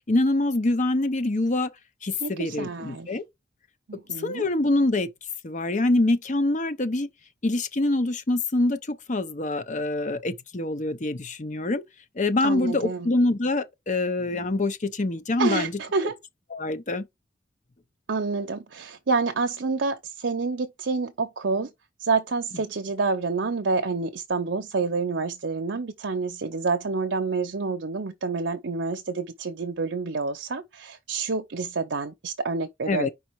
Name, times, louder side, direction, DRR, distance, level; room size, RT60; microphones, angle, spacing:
voice 1, 0.1-1.7 2.0-3.2 4.2-5.1 5.4-7.1 7.4-11.8 12.2-15.7 16.5-17.1 32.9-33.1, left 2 dB, 45° left, 0.8 m, -25 dB
voice 2, 2.2-3.1 3.9-4.4 12.4-13.1 15.4-16.2 18.1-21.7 22.0-33.1, right 4 dB, 80° right, 0.7 m, -28 dB
5.0 x 4.0 x 4.6 m
head